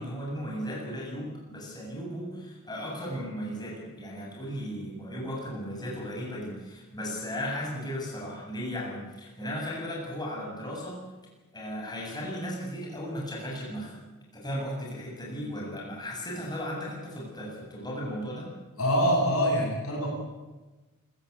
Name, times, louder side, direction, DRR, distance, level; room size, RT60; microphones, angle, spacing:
voice 1, 0.0-11.0 11.5-14.0 14.3-18.5, equal, 20° left, -3 dB, 7.6 m, -36 dB
voice 2, 18.8-20.1, equal, 75° left, -1 dB, 7.8 m, -24 dB
25.5 x 15.5 x 8.8 m, 1.2 s
head